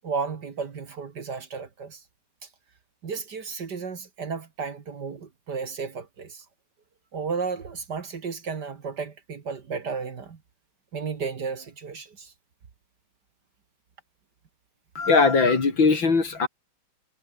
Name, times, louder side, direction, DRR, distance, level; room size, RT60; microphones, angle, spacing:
voice 1, 0.0-2.0 3.0-6.4 7.1-10.4 10.9-12.3, right 5 dB, 50° right, 2.3 m, -33 dB
voice 2, 15.0-16.5, left 4 dB, 60° left, 4.1 m, -20 dB
omnidirectional pair, 2.4 m